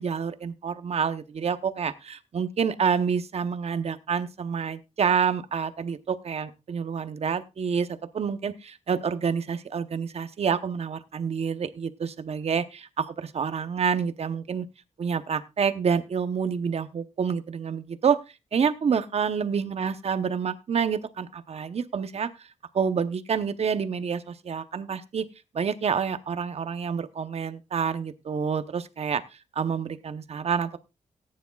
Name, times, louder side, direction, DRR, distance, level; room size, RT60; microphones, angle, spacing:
voice 1, 0.0-7.9 8.1-14.7 15.0-18.2 18.5-22.5 22.7-25.3 25.5-29.2 29.5-30.8, right 6 dB, 55° right, 11 dB, 0.8 m, -28 dB
18.0 x 9.7 x 2.3 m, 0.26 s
wide cardioid pair, 135°, 13 cm